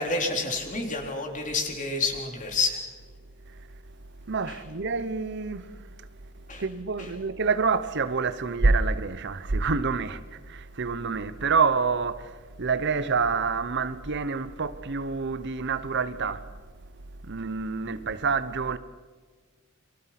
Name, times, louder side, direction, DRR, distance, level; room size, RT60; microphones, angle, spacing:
voice 1, 0.0-2.8 6.5-6.6, left 3 dB, 40° left, 3.8 m, -28 dB
voice 2, 3.5-3.8 4.2-6.3 6.6-16.5 17.1-18.8, right 4 dB, 55° right, 0.9 m, -27 dB
29.0 x 23.5 x 6.0 m
head